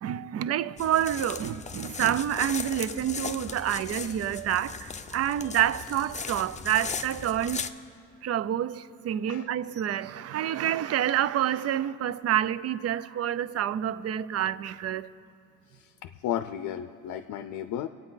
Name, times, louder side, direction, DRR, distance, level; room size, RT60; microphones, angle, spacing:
voice 1, 0.0-7.7 8.2-15.1, right 11 dB, 55° right, 0.5 m, -28 dB
sound 1, 0.8-7.7, left 5 dB, 25° left, 0.5 m, -37 dB
voice 2, 15.7-17.9, left 10 dB, 80° left, 0.5 m, -34 dB
25.0 x 9.0 x 4.0 m
cardioid pair, 90°, 30 cm